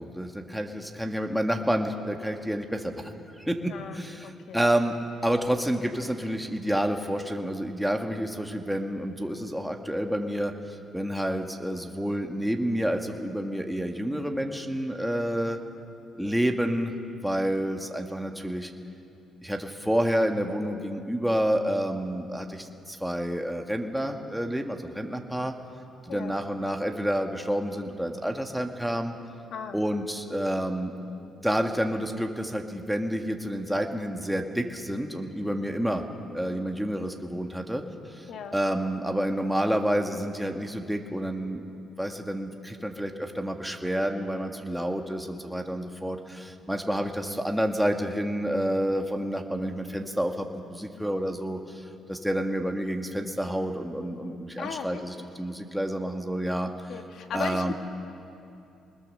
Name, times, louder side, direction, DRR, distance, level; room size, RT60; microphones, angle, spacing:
voice 1, 0.0-3.0 3.4-4.9 5.2-15.6 16.1-16.9 17.2-18.7 19.4-25.5 26.1-29.1 29.7-30.9 31.4-36.0 36.3-41.6 42.0-56.7 57.3-57.7, equal, ahead, 3 dB, 1.7 m, -29 dB
voice 2, 3.7-4.6 26.1-26.3 29.5-29.8 38.3-38.6 54.6-55.2 56.9-57.7, left 6 dB, 70° left, 6 dB, 1.8 m, -37 dB
24.0 x 20.5 x 6.7 m, 2.7 s
cardioid pair, 90°, 0 cm